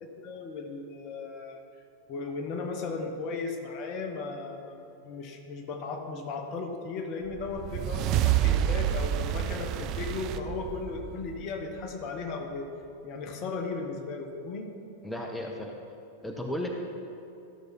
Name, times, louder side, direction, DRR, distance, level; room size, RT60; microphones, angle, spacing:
voice 1, 0.0-1.6 2.1-4.8 5.0-12.7 13.0-14.7, left 4 dB, 40° left, 4 dB, 1.0 m, -36 dB
sound 1, 7.3-11.9, right 11 dB, 40° right, 0.4 m, -29 dB
voice 2, 15.0-15.8 16.2-16.7, left 1 dB, 5° left, 1 dB, 0.8 m, -34 dB
13.0 x 6.5 x 4.3 m, 2.8 s
figure-of-eight pair, 90°, 0 cm